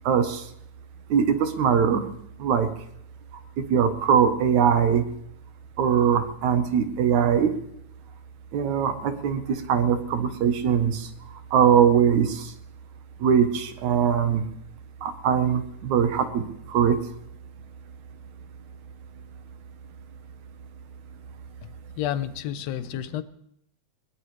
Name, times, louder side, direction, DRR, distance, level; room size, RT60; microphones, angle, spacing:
voice 1, 0.0-0.5 1.1-2.1 2.4-2.7 3.6-5.0 5.8-7.5 8.5-11.1 11.5-12.5 13.2-14.5 15.0-17.0, right 7 dB, 75° right, 9 dB, 2.5 m, -21 dB
voice 2, 22.0-23.2, left 11 dB, 70° left, 13 dB, 1.8 m, -30 dB
20.5 x 19.5 x 3.3 m, 0.73 s
omnidirectional pair, 3.4 m